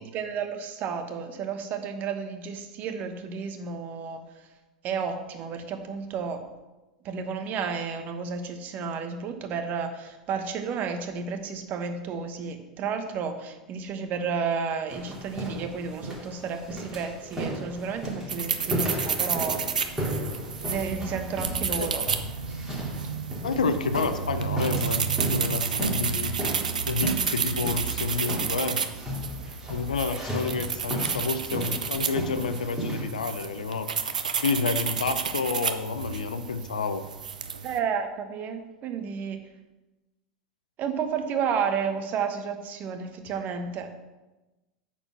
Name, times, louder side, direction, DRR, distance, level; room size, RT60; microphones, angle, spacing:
voice 1, 0.1-4.2 4.8-6.4 7.0-19.6 20.7-22.0 37.6-39.4 40.8-43.9, right 6 dB, 45° right, 7 dB, 1.2 m, -32 dB
sound 1, 14.9-33.0, equal, 10° right, 3.3 m, -35 dB
sound 2, 18.3-37.8, right 6 dB, 85° right, 0.6 m, -31 dB
voice 2, 23.4-26.3 26.9-28.8 29.5-34.1 34.4-37.0, left 4 dB, 85° left, 10 dB, 0.7 m, -29 dB
8.9 x 4.5 x 5.9 m, 1.1 s
hypercardioid pair, 85°, 4 cm